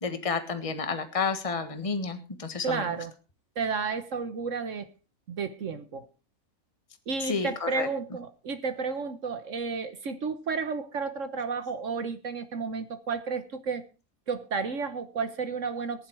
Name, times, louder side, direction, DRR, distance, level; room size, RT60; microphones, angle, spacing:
voice 1, 0.0-2.8 7.3-7.9, left 5 dB, 25° left, 8 dB, 1.6 m, -30 dB
voice 2, 2.6-3.1 3.6-4.9 5.3-6.1 7.1-13.8 14.3-16.1, right 5 dB, 60° right, 10 dB, 1.4 m, -32 dB
15.5 x 11.0 x 4.7 m, 0.34 s
omnidirectional pair, 1.5 m